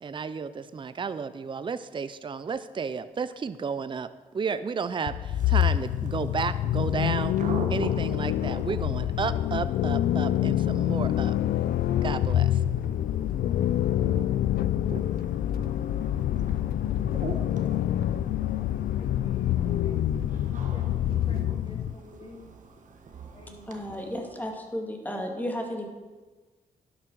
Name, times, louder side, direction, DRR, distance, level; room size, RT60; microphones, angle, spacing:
voice 1, 0.0-7.4 7.7-11.4 12.0-12.6, right 5 dB, 35° right, 0.5 m, -32 dB
sound 1, 5.1-21.9, left 12 dB, 85° left, 0.4 m, -26 dB
sound 2, 5.2-24.5, right 4 dB, 60° right, 1.4 m, -44 dB
voice 2, 19.0-22.5 23.3-24.2, left 3 dB, 40° left, 2.4 m, -49 dB
voice 3, 23.7-25.9, equal, 10° left, 2.3 m, -33 dB
11.0 x 7.9 x 6.3 m
cardioid pair, 80°, 15 cm